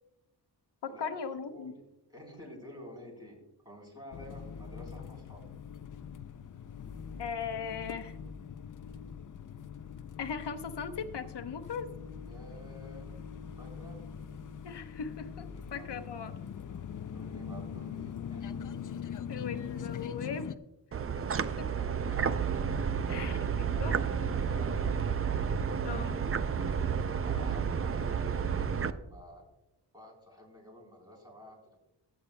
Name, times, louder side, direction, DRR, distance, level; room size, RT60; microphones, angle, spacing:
voice 1, 0.8-1.7 7.2-8.2 10.2-11.9 14.6-16.4 19.3-20.5 23.1-24.0 25.8-26.2, left 6 dB, 70° left, 8 dB, 1.0 m, -38 dB
voice 2, 2.1-3.4 3.6-5.5 12.3-13.1 13.6-14.1 15.5-15.9 16.2-16.4 16.7-18.5 21.2-22.3 23.0-23.3 23.7-24.8 27.2-29.4 29.9-31.6, equal, 10° right, -1 dB, 3.8 m, -50 dB
sound 1, 4.1-20.5, left 7 dB, 50° left, 0.5 m, -42 dB
sound 2, 20.9-28.9, right 6 dB, 35° right, 0.4 m, -31 dB
22.5 x 8.5 x 2.2 m, 0.93 s
wide cardioid pair, 150°, 42 cm